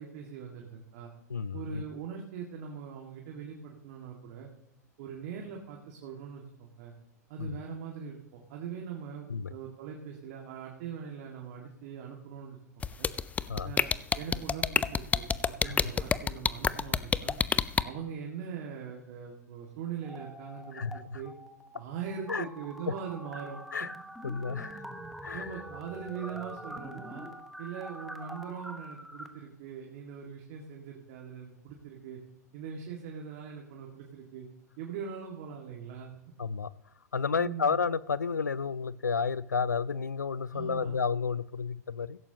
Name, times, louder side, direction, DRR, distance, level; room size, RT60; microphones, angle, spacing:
voice 1, 0.0-1.1 1.5-4.5 5.0-6.9 7.3-12.6 13.0-13.1 13.6-17.4 17.8-21.3 21.7-23.6 25.3-27.3 27.6-32.2 32.5-34.5 34.8-36.2 37.4-37.8 40.5-41.0, right 7 dB, 55° right, 0 dB, 2.0 m, -41 dB
voice 2, 1.3-1.8 7.4-7.6 9.3-9.5 13.5-13.7 15.6-15.8 20.7-21.2 22.3-22.5 22.9-23.0 23.7-23.9 24.2-24.8 25.2-25.5 36.4-36.7 37.1-42.2, left 5 dB, 85° left, 20 dB, 0.5 m, -31 dB
sound 1, 12.8-17.8, left 6 dB, 15° left, 0.5 m, -26 dB
sound 2, 20.0-21.0 21.3-29.3, right 1 dB, ahead, 1.3 m, -45 dB
16.5 x 15.5 x 2.9 m, 0.85 s
figure-of-eight pair, 95°, 9 cm